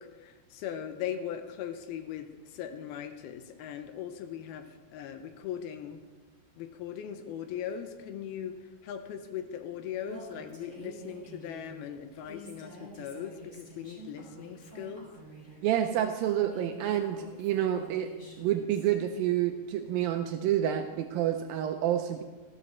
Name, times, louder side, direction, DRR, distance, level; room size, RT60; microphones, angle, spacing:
voice 1, 0.0-6.0 6.6-15.1, left 9 dB, 80° left, 8 dB, 2.5 m, -39 dB
Female speech woman speaking, 10.0-18.9, right 1 dB, 25° left, 4.7 m, -48 dB
voice 2, 15.6-18.1 18.4-22.2, right 11 dB, 80° right, 6 dB, 2.1 m, -28 dB
14.5 x 12.0 x 4.3 m, 1.4 s
omnidirectional pair, 4.7 m